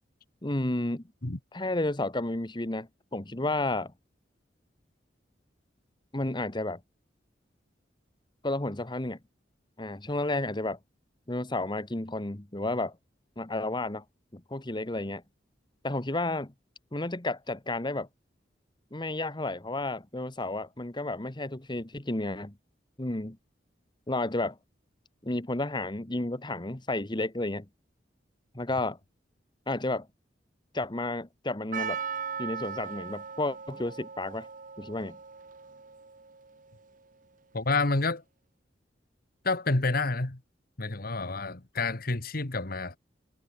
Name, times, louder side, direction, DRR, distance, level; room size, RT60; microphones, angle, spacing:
voice 1, 0.4-1.0 1.5-3.9 6.1-6.8 8.4-9.2 9.8-10.8 11.3-13.0 13.4-14.0 14.3-15.2 15.8-16.5 16.9-18.1 18.9-22.5 23.0-23.4 24.1-24.6 25.2-27.6 28.5-29.0 29.7-30.1 30.7-32.0 32.4-34.5 34.8-35.2, left 2 dB, 25° left, 1.4 m, -31 dB
Percussion, 31.7-36.6, right 6 dB, 50° right, 1.3 m, -38 dB
voice 2, 37.5-38.2 39.4-40.4 40.8-43.0, left 3 dB, 55° left, 1.7 m, -29 dB
head